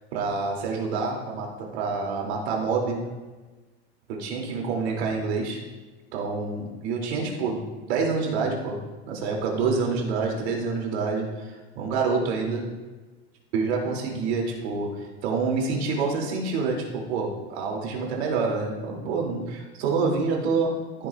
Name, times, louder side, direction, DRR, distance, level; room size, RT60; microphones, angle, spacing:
voice 1, 0.1-3.1 4.1-5.6 6.1-8.8 9.1-12.7 13.5-21.1, right 4 dB, 80° right, -1 dB, 3.0 m, -27 dB
14.5 x 9.5 x 2.5 m, 1.3 s
supercardioid pair, 170°, 32 cm